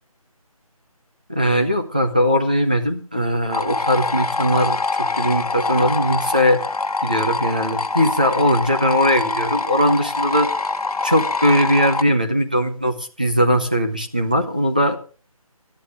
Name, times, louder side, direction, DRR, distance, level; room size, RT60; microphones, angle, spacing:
voice 1, 1.3-6.6 7.0-10.5 11.0-15.0, equal, 15° right, 3 dB, 0.7 m, -19 dB
sound 1, 3.5-12.0, left 3 dB, 80° left, 1.2 m, -24 dB
16.5 x 11.5 x 3.5 m, 0.39 s
figure-of-eight pair, 180°, 19 cm